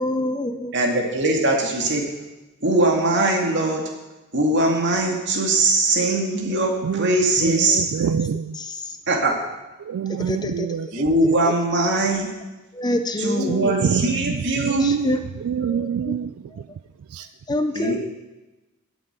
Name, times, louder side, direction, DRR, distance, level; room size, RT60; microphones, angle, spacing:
voice 1, 0.0-0.7 6.5-6.7 8.6-8.7 10.2-10.7 12.7-13.9 14.8-15.2 15.7-16.2 17.5-18.0, left 1 dB, 20° left, 0.6 m, -26 dB
voice 2, 0.7-2.1 2.6-3.9 4.3-7.9 9.1-9.4 10.9-12.3 13.2-14.9 17.7-18.0, right 2 dB, 55° right, 2.2 m, -21 dB
voice 3, 6.8-8.6 9.9-11.0 13.5-16.4 17.1-17.3, right 7 dB, 70° right, 0.3 m, -26 dB
8.9 x 7.9 x 8.1 m
head